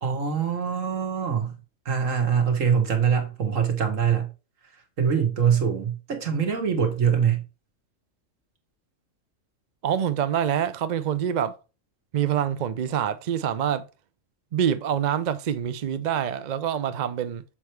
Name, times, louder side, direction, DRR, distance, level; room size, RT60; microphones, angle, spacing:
voice 1, 0.0-1.6 1.9-4.3 5.0-7.4, right 7 dB, 75° right, 1.8 m, -23 dB
voice 2, 9.8-11.6 12.1-13.9 14.5-17.4, right 9 dB, 55° right, 0.5 m, -26 dB
7.1 x 4.5 x 3.2 m
omnidirectional pair, 1.4 m